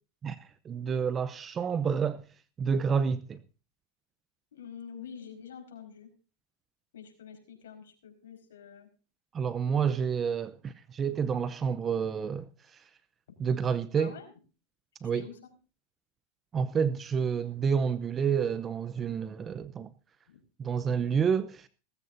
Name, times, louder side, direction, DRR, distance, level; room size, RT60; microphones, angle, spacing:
voice 1, 0.6-2.2 2.6-3.4 9.3-12.8 13.4-14.2 15.0-15.3 16.5-19.9 20.6-21.7, right 6 dB, 25° right, 0.7 m, -29 dB
voice 2, 4.5-6.1 6.9-8.9 14.0-14.3 15.0-15.4 20.3-20.4, left 7 dB, 85° left, 5.0 m, -46 dB
18.0 x 15.0 x 2.7 m
hypercardioid pair, 115°, 0 cm